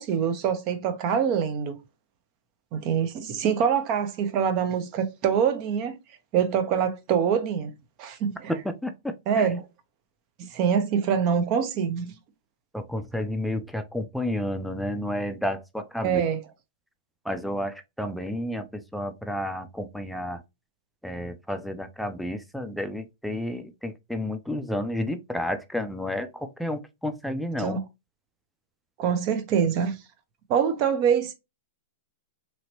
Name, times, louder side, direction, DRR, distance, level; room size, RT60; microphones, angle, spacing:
voice 1, 0.0-1.8 2.7-6.0 6.3-7.7 8.0-8.3 9.3-9.6 10.4-12.1 16.0-16.4 27.6-27.8 29.0-30.0 30.5-31.3, right 7 dB, 40° right, 0.7 m, -24 dB
voice 2, 8.5-9.5 12.7-16.3 17.2-20.4 21.0-27.8, left 1 dB, ahead, 0.4 m, -31 dB
3.0 x 2.8 x 2.8 m
hypercardioid pair, 125°, 0 cm